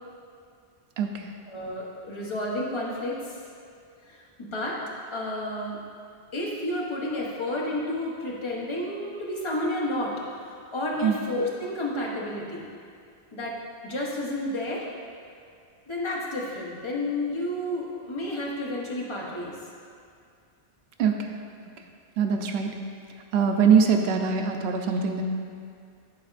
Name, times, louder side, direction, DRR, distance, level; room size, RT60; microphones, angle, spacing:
voice 1, 1.0-1.3 11.0-11.2 21.0-21.2 22.2-22.7 23.3-25.2, right 6 dB, 85° right, 4 dB, 0.9 m, -22 dB
voice 2, 1.5-3.4 4.1-4.8 5.1-5.8 6.3-10.1 10.7-12.6 13.3-13.6 13.8-14.9 15.9-19.6, left 1 dB, 30° left, -4 dB, 0.9 m, -31 dB
12.0 x 4.2 x 2.4 m, 2.3 s
omnidirectional pair, 1.1 m